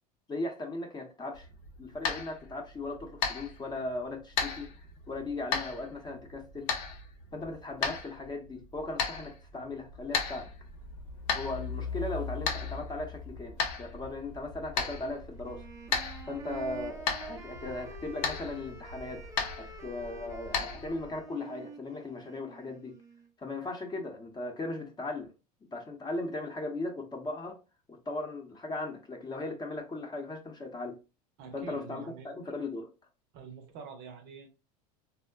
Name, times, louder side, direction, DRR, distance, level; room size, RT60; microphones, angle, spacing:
voice 1, 0.3-1.5 1.8-4.7 5.1-6.7 7.3-10.5 11.3-15.7 16.3-19.3 19.5-23.0 23.4-25.3 25.7-27.6 27.9-31.0 31.5-32.9, left 2 dB, 20° left, 0.7 m, -38 dB
sound 1, 1.3-21.2, left 5 dB, 65° left, 0.7 m, -37 dB
Truck, 9.9-21.1, left 4 dB, 85° left, 1.0 m, -44 dB
Wind instrument woodwind instrument, 15.4-23.3, right 3 dB, 15° right, 0.4 m, -47 dB
voice 2, 31.4-32.3 33.3-34.6, right 6 dB, 50° right, 0.7 m, -46 dB
3.4 x 2.1 x 2.3 m
supercardioid pair, 110°, 21 cm